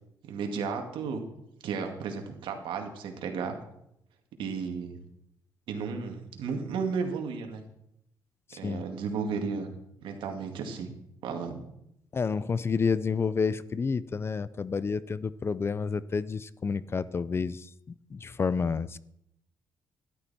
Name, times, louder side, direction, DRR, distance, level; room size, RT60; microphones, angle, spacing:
voice 1, 0.3-1.2 1.6-3.6 4.4-5.0 5.7-7.6 8.6-9.7 10.0-10.9 11.2-11.6, right 5 dB, 80° right, 4 dB, 2.2 m, -33 dB
voice 2, 8.5-8.8 12.1-17.7 18.1-19.0, left 5 dB, 30° left, 18 dB, 0.4 m, -29 dB
13.0 x 12.0 x 4.3 m, 0.78 s
cardioid pair, 110°, 8 cm